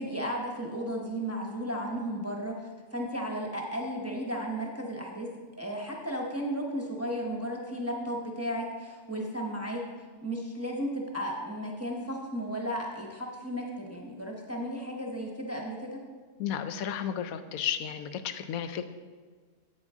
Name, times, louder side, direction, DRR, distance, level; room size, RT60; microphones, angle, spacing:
voice 1, 0.0-5.3 5.6-9.8 10.2-16.0, equal, 15° right, -1 dB, 0.7 m, -34 dB
voice 2, 16.4-18.9, left 9 dB, 90° left, 10 dB, 1.1 m, -33 dB
9.0 x 8.1 x 3.6 m, 1.5 s
omnidirectional pair, 1.4 m